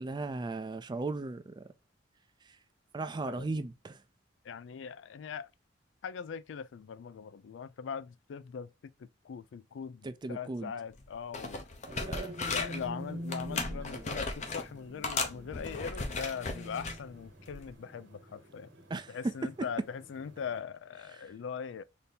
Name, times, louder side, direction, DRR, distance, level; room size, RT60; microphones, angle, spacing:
voice 1, 0.0-1.7 2.9-4.0 10.0-10.7 12.0-12.3 18.9-19.3, right 3 dB, 25° right, 0.3 m, -36 dB
voice 2, 4.4-5.5 6.0-11.6 12.4-18.7 19.1-21.8, left 6 dB, 70° left, 0.3 m, -41 dB
sound 1, 10.9-11.1 11.3-12.9 13.3-14.7 15.0-17.0 17.5-17.7, left 3 dB, 40° left, 0.7 m, -36 dB
sound 2, 11.9-20.6, equal, 75° right, 1.3 m, -46 dB
4.1 x 2.7 x 3.4 m
head